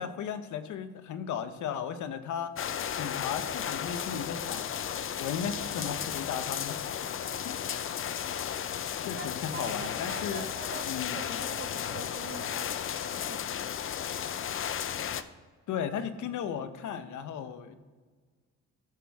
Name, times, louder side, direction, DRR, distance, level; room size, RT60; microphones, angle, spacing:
voice 1, 0.0-2.5 2.9-4.7 5.2-6.8 7.4-7.7 9.0-10.4 10.8-11.4 15.7-17.7, left 8 dB, 75° left, 10 dB, 0.9 m, -35 dB
sound 1, 2.6-15.2, left 9 dB, 45° left, 0.5 m, -34 dB
voice 2, 9.2-12.7 13.1-13.4 13.7-13.8, right 6 dB, 35° right, 9 dB, 0.8 m, -45 dB
14.5 x 6.2 x 3.5 m, 1.5 s
cardioid pair, 90°, 30 cm